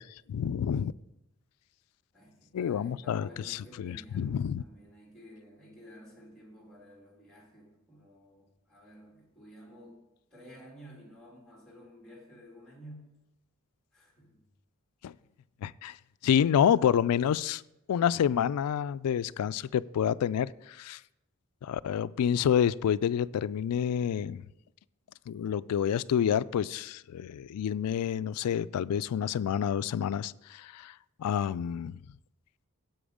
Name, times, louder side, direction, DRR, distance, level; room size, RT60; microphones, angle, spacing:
voice 1, 0.3-0.9 2.5-4.6 15.0-15.1 15.6-15.9 16.2-17.6 17.9-21.0 21.6-24.4 25.3-30.9 31.2-31.9, left 8 dB, 90° left, 0.3 m, -28 dB
voice 2, 2.1-10.0 10.3-13.1 13.9-14.5, equal, ahead, 2.2 m, -52 dB
10.5 x 7.8 x 5.0 m
head